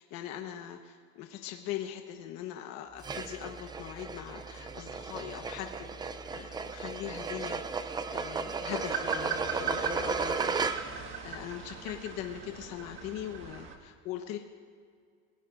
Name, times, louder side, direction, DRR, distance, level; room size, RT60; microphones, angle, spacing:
voice 1, 0.1-10.6 11.2-14.4, left 11 dB, 55° left, 4 dB, 1.2 m, -41 dB
sound 1, 3.0-11.1, right 5 dB, 15° right, 0.4 m, -35 dB
sound 2, 8.8-13.7, right 6 dB, 40° right, 1.6 m, -39 dB
26.0 x 17.5 x 2.6 m, 2.1 s
cardioid pair, 145°, 31 cm